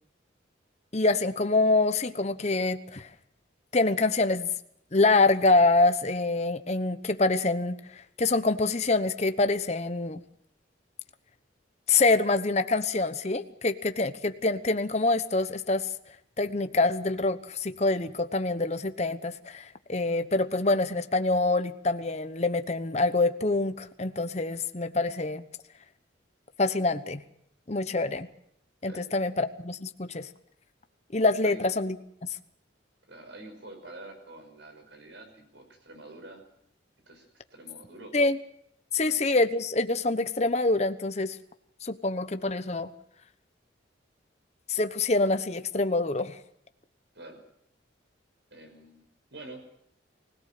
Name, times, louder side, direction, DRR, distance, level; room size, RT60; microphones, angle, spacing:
voice 1, 0.9-3.1 3.7-4.5 4.9-7.8 8.2-10.2 11.9-15.9 16.4-25.4 26.6-27.2 27.7-28.3 28.8-30.3 31.1-32.0 38.1-38.4 38.9-41.4 41.8-42.9 44.7-46.4, left 3 dB, 35° left, 9 dB, 1.0 m, -25 dB
voice 2, 28.9-29.3 31.4-31.7 33.1-36.4 37.1-38.1 39.0-39.2 47.1-47.4 48.5-49.0 49.3-49.6, right 2 dB, 65° right, 5 dB, 6.0 m, -47 dB
24.0 x 17.5 x 7.6 m, 0.72 s
head